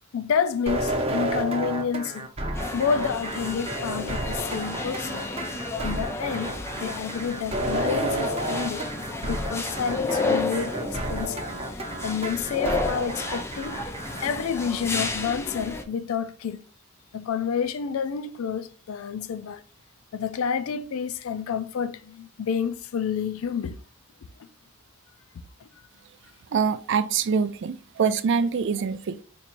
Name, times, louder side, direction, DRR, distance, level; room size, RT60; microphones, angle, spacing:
voice 1, 0.1-2.3 2.7-5.3 5.8-8.8 9.2-11.4 12.0-13.8 14.2-16.6 17.1-19.6 20.1-23.8 25.6-25.7, left 7 dB, 90° left, 0.4 m, -29 dB
sound 1, 0.7-14.3, right 1 dB, 30° right, 0.8 m, -31 dB
sound 2, 2.5-15.8, left 2 dB, 15° left, 0.5 m, -32 dB
voice 2, 26.5-29.2, right 6 dB, 60° right, 0.4 m, -24 dB
4.3 x 2.9 x 2.6 m
head